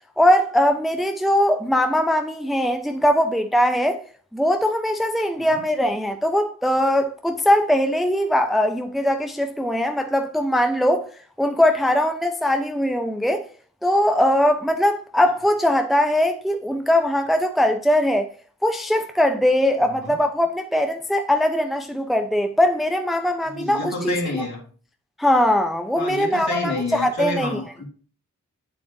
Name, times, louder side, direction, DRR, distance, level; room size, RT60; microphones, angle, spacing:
voice 1, 0.2-4.0 4.3-11.1 11.4-13.5 13.8-18.3 18.6-24.1 25.2-27.5, left 1 dB, ahead, 0.8 m, -21 dB
voice 2, 19.8-20.2 23.4-24.6 25.9-27.9, left 2 dB, 55° left, 3.6 m, -29 dB
7.7 x 6.9 x 2.8 m
cardioid pair, 45°, 33 cm